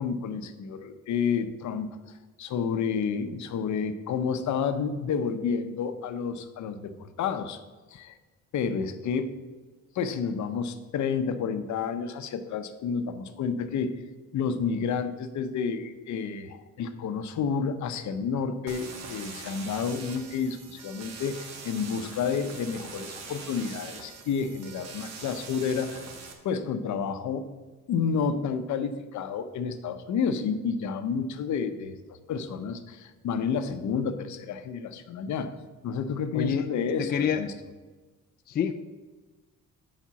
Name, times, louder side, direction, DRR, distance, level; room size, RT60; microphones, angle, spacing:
voice 1, 0.0-1.9 2.4-7.6 7.9-8.2 8.5-9.3 9.9-14.0 14.3-26.0 26.4-27.5 27.9-35.5 35.8-37.5, left 6 dB, 70° left, 9 dB, 0.8 m, -30 dB
sound 1, 18.7-26.3, right 5 dB, 60° right, 1.2 m, -43 dB
voice 2, 36.3-36.7 37.0-37.4 38.5-38.7, left 8 dB, 35° left, 8 dB, 0.4 m, -26 dB
7.4 x 5.1 x 6.9 m, 1.3 s
cardioid pair, 170°, 30 cm